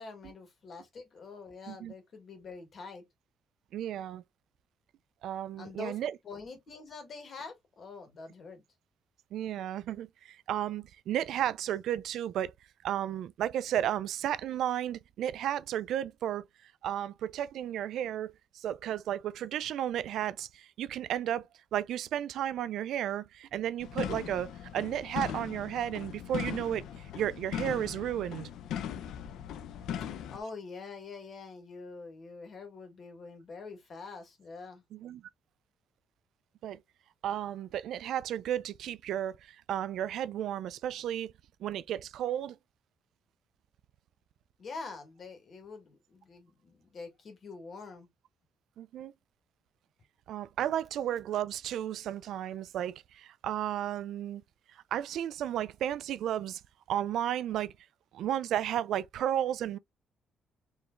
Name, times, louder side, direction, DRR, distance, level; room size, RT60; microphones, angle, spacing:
voice 1, 0.0-3.0 5.6-6.0 6.2-8.6 30.3-34.8 44.6-48.1, left 4 dB, 40° left, 1.9 m, -45 dB
voice 2, 3.7-4.2 5.2-6.2 9.3-12.5 12.8-16.5 16.8-21.5 21.7-26.8 27.1-28.5 34.9-35.2 36.6-36.8 37.2-41.3 41.6-42.6 48.8-49.1 50.3-54.4 54.9-56.6 56.9-57.7 58.1-59.8, right 11 dB, 75° right, 0.3 m, -33 dB
sound 1, 23.8-30.4, left 9 dB, 80° left, 0.6 m, -39 dB
4.7 x 3.2 x 2.5 m
cardioid pair, 140°, 0 cm